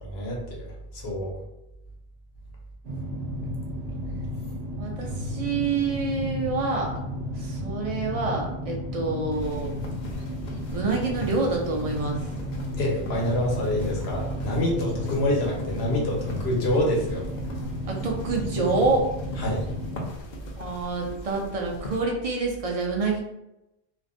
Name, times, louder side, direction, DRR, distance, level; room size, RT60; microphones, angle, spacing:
voice 1, 0.0-1.3 5.0-5.6 12.8-17.2 19.4-19.6, left 1 dB, 85° left, -2 dB, 1.0 m, -27 dB
sound 1, 2.8-20.1, equal, 90° right, 0.9 m, -33 dB
voice 2, 4.8-7.0 7.4-9.8 10.7-12.3 17.9-19.1 20.6-23.2, right 3 dB, 55° right, -1 dB, 0.4 m, -27 dB
sound 2, 9.3-22.0, left 1 dB, 55° left, 0.5 m, -41 dB
2.4 x 2.0 x 2.5 m, 0.89 s
omnidirectional pair, 1.0 m